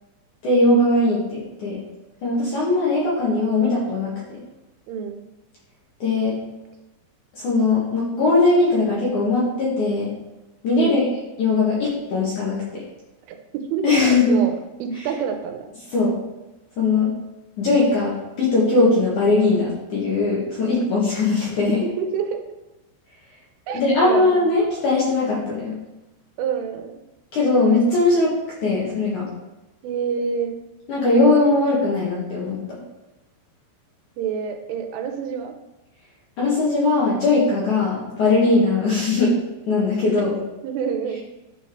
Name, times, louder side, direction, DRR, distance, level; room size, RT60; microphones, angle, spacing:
voice 1, 0.4-1.8 2.2-4.1 6.0-6.4 7.4-10.1 10.6-11.1 11.4-12.8 13.8-14.4 15.9-16.1 16.8-17.1 17.6-21.8 23.7-25.7 27.3-28.3 28.6-29.3 30.9-32.5 36.4-39.4 39.7-40.4, left 3 dB, 55° left, -6 dB, 2.3 m, -20 dB
voice 2, 4.9-5.2 10.7-11.0 13.3-14.5 14.8-15.7 22.0-22.4 23.7-24.3 26.4-27.0 29.8-30.6 34.2-35.5 38.8-39.0 40.1-40.2 40.6-41.2, right 6 dB, 80° right, 6 dB, 3.3 m, -27 dB
11.0 x 4.5 x 4.6 m, 1.0 s
omnidirectional pair, 5.6 m